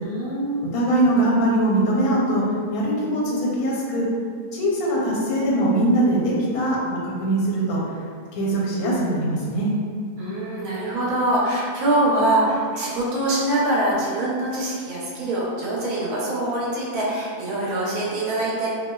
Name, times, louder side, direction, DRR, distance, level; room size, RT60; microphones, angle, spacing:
voice 1, 0.0-0.6 10.2-18.7, right 1 dB, 85° right, -6 dB, 1.2 m, -24 dB
voice 2, 0.6-2.4 2.7-4.1 4.5-7.8 8.3-9.7, right 1 dB, 85° left, -4 dB, 1.1 m, -21 dB
2.7 x 2.1 x 2.2 m, 2.1 s
omnidirectional pair, 1.5 m